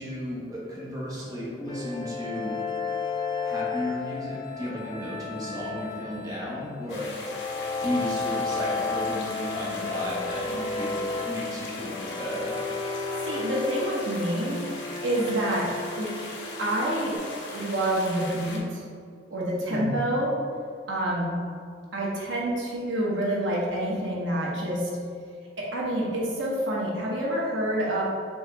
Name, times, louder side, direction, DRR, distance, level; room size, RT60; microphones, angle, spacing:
voice 1, 0.0-2.6 3.4-7.1 7.8-12.6 19.7-19.9, equal, 20° right, -6 dB, 0.9 m, -34 dB
sound 1, 1.7-17.2, left 4 dB, 25° left, 0.4 m, -33 dB
sound 2, 6.9-18.6, left 2 dB, 65° left, 0.8 m, -39 dB
voice 2, 13.2-14.6 15.0-15.7 16.0-16.1 16.6-17.1 17.5-18.8 19.3-20.3 20.9-21.4 21.9-24.9 25.6-28.0, right 1 dB, 80° right, -4 dB, 1.0 m, -27 dB
4.4 x 3.6 x 3.3 m, 2.1 s
head